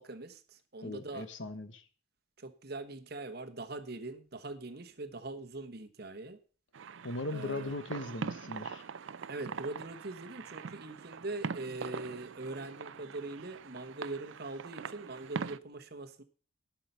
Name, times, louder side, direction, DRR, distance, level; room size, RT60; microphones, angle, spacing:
voice 1, 0.0-1.3 2.4-6.4 7.3-7.7 9.3-16.2, right 2 dB, 50° right, 9 dB, 1.1 m, -42 dB
voice 2, 0.8-1.8 7.0-8.8, left 2 dB, 65° left, 10 dB, 1.2 m, -39 dB
sound 1, 6.7-15.6, right 5 dB, 65° right, 0.5 m, -42 dB
12.0 x 5.7 x 6.8 m, 0.40 s
head